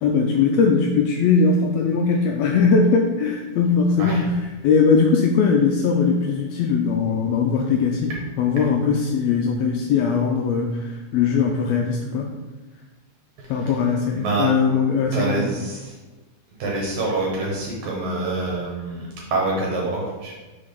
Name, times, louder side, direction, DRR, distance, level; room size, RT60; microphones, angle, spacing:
voice 1, 0.0-4.3 4.6-8.1 8.4-12.3 13.5-15.5, left 5 dB, 85° left, 2 dB, 1.5 m, -20 dB
voice 2, 13.4-13.7 14.1-14.5 15.1-16.0 16.6-20.3, right 2 dB, 70° right, -3 dB, 2.4 m, -26 dB
5.7 x 4.2 x 5.0 m, 1.2 s
omnidirectional pair, 3.6 m